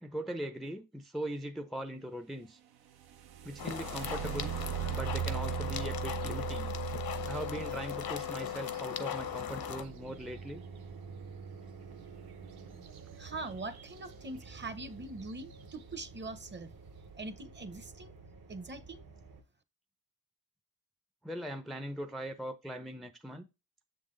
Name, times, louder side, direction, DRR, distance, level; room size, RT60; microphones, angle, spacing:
voice 1, 0.0-2.6 3.4-4.5 4.9-6.7 7.3-10.6 21.2-23.5, right 1 dB, ahead, 0.4 m, -40 dB
sound 1, 2.9-10.8 12.8-13.0 13.4-14.0 14.6-14.7 15.2-15.5, right 11 dB, 85° right, 0.7 m, -39 dB
sound 2, 3.6-9.8, left 9 dB, 75° left, 0.8 m, -38 dB
sound 3, 9.1-19.4, right 5 dB, 65° right, 1.2 m, -50 dB
voice 2, 13.2-16.7 17.1-18.1 18.5-19.0, right 2 dB, 30° right, 0.8 m, -42 dB
7.0 x 3.9 x 3.8 m
cardioid pair, 95°, 37 cm